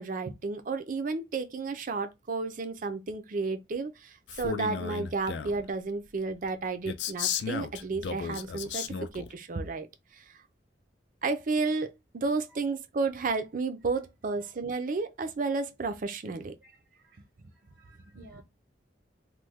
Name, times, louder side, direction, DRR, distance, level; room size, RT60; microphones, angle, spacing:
voice 1, 0.0-8.8 9.1-9.9 11.2-16.5 18.3-18.4, right 4 dB, 50° right, 0.5 m, -32 dB
Male speech man speaking, 4.3-5.6 6.9-9.3, left 6 dB, 75° left, 0.4 m, -34 dB
voice 2, 16.6-17.2 17.5-18.4, right 1 dB, 70° right, 0.8 m, -56 dB
3.1 x 2.1 x 3.5 m
head